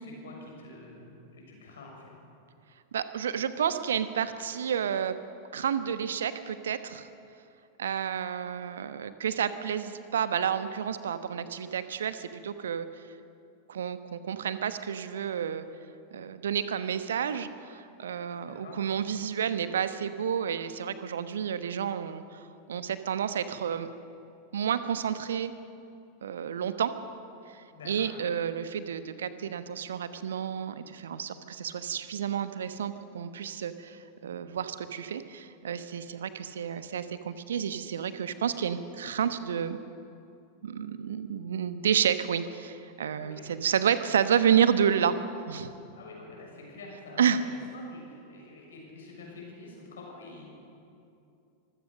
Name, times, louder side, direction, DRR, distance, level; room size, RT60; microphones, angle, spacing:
voice 1, 0.0-2.1 18.4-18.8 27.7-28.1 43.2-43.5 45.9-50.4, left 3 dB, 65° left, -1 dB, 6.8 m, -47 dB
voice 2, 2.9-5.1 5.5-7.1 7.8-12.9 13.7-15.6 16.1-23.9 24.5-25.5 26.2-26.9 27.5-39.8 40.6-45.2 45.5-45.7 47.2-47.4, right 8 dB, 65° right, 11 dB, 1.1 m, -30 dB
24.5 x 16.0 x 6.6 m, 2.6 s
figure-of-eight pair, 90°, 0 cm